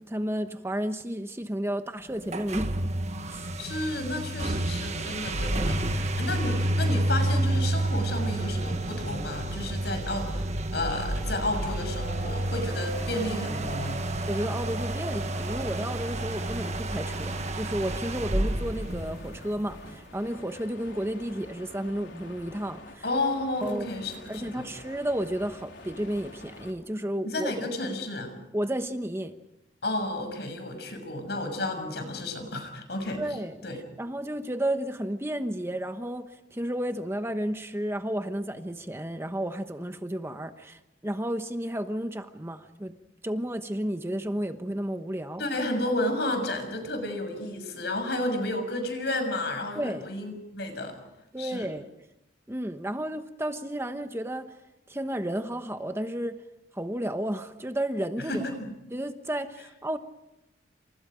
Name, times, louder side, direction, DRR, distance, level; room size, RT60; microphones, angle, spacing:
voice 1, 0.0-2.7 3.3-3.5 14.3-23.0 23.6-23.9 24.3-27.5 28.5-29.3 33.2-33.7 34.0-42.9 43.2-45.4 49.8-50.1 51.3-51.9 52.5-54.5 54.9-56.4 56.7-58.5 58.9-60.0, right 1 dB, 15° right, 1.1 m, -32 dB
sound 1, 2.2-19.7, right 1 dB, 40° right, 1.6 m, -30 dB
voice 2, 3.6-10.5 10.7-14.0 23.0-24.7 27.2-28.3 29.8-33.2 33.6-33.8 45.4-51.0 51.4-51.7 58.2-58.7, left 1 dB, 65° left, 6.7 m, -32 dB
sound 2, 11.6-26.7, left 2 dB, 85° left, 4.0 m, -48 dB
29.5 x 27.5 x 5.1 m
head